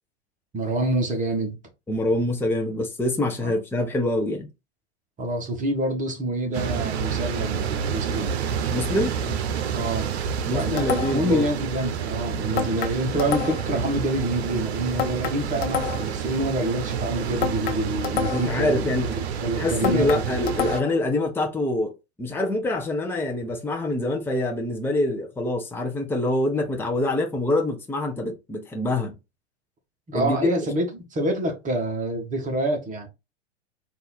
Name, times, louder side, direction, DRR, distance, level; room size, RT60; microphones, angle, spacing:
voice 1, 0.5-1.6 3.4-3.5 5.2-8.4 9.2-10.2 10.5-20.2 30.1-33.1, right 1 dB, 25° right, 1.4 m, -27 dB
voice 2, 1.9-4.5 8.7-9.2 10.5-11.5 18.3-19.1 19.5-21.9 22.2-29.2 30.1-30.4, left 1 dB, 5° left, 0.8 m, -25 dB
sound 1, 6.5-20.8, right 7 dB, 70° right, 0.8 m, -29 dB
sound 2, 10.8-11.4 12.6-13.8 15.0-16.2 17.4-18.6 19.8-21.1, left 9 dB, 55° left, 0.8 m, -29 dB
4.0 x 2.7 x 4.0 m
hypercardioid pair, 100°, 34 cm